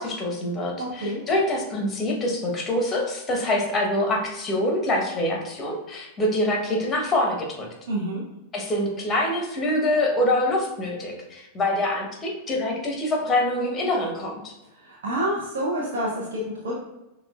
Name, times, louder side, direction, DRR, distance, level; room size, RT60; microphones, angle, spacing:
voice 1, 0.0-7.7 8.5-14.5, left 1 dB, 20° left, 1 dB, 1.0 m, -25 dB
voice 2, 0.8-1.2 7.9-8.2 14.8-16.7, right 1 dB, 65° right, -5 dB, 0.7 m, -28 dB
5.9 x 2.3 x 2.3 m, 0.97 s
figure-of-eight pair, 90°, 0 cm